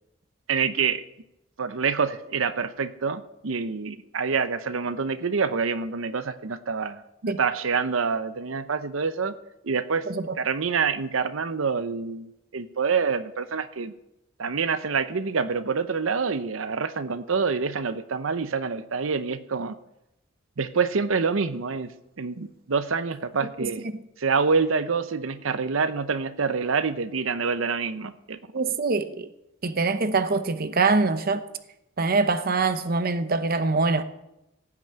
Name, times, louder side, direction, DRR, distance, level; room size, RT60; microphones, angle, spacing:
voice 1, 0.5-1.0 1.6-9.3 9.6-10.1 10.4-13.9 14.4-19.8 20.6-21.9 22.2-23.8 24.2-28.4, right 5 dB, 85° right, 0.8 m, -26 dB
voice 2, 23.6-24.0 28.5-29.3 29.6-31.4 32.0-34.0, right 3 dB, 50° right, 0.8 m, -24 dB
16.5 x 6.1 x 8.7 m
head